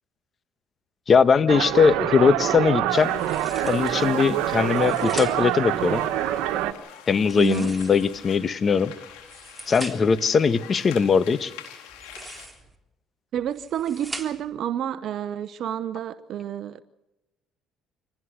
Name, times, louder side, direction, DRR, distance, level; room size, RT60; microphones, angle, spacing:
voice 1, 1.1-3.1 3.6-6.0 7.1-8.9 9.7-11.5, left 6 dB, 40° left, 13 dB, 1.3 m, -20 dB
sound 1, 1.5-6.7, right 13 dB, 80° right, 1.6 m, -25 dB
sound 2, 2.9-12.5, left 9 dB, 85° left, 4.5 m, -45 dB
sound 3, 3.1-4.0 4.6-5.6 7.2-8.3 9.1-10.2 11.9-12.8 13.4-14.6, right 2 dB, 10° right, 3.6 m, -41 dB
voice 2, 7.3-7.7 13.3-16.8, right 10 dB, 65° right, 13 dB, 0.9 m, -29 dB
26.5 x 19.0 x 6.6 m, 0.95 s
supercardioid pair, 70°, 0 cm